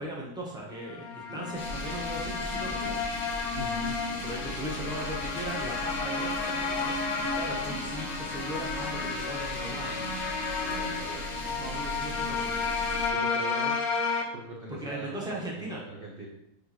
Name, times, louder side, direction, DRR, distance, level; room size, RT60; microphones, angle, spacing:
voice 1, 0.0-3.0 4.2-10.0 11.5-12.5 14.8-15.8, right 1 dB, 5° right, -3 dB, 0.9 m, -38 dB
sound 1, 0.9-14.2, left 5 dB, 60° left, 1.2 m, -32 dB
sound 2, 1.6-13.1, equal, 25° left, 1.4 m, -38 dB
voice 2, 3.5-4.0 10.6-11.3 13.1-13.8 14.3-16.3, right 2 dB, 50° right, -2 dB, 0.7 m, -41 dB
6.5 x 5.0 x 3.1 m, 0.83 s
omnidirectional pair, 2.0 m